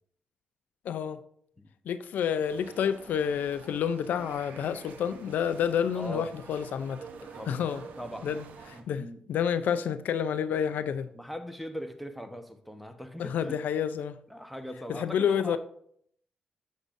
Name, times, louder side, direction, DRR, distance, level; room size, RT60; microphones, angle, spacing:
voice 1, 0.8-1.2 1.9-7.1 7.5-7.8 8.2-11.1 13.2-14.2 14.9-15.6, left 8 dB, 85° left, 0.4 m, -29 dB
sound 1, 2.4-8.8, right 5 dB, 85° right, 0.8 m, -48 dB
voice 2, 5.9-6.3 7.2-7.7 8.0-8.3 8.7-9.2 11.1-13.6 14.3-15.6, equal, ahead, 0.9 m, -40 dB
7.2 x 6.6 x 2.6 m
cardioid pair, 85°, 3 cm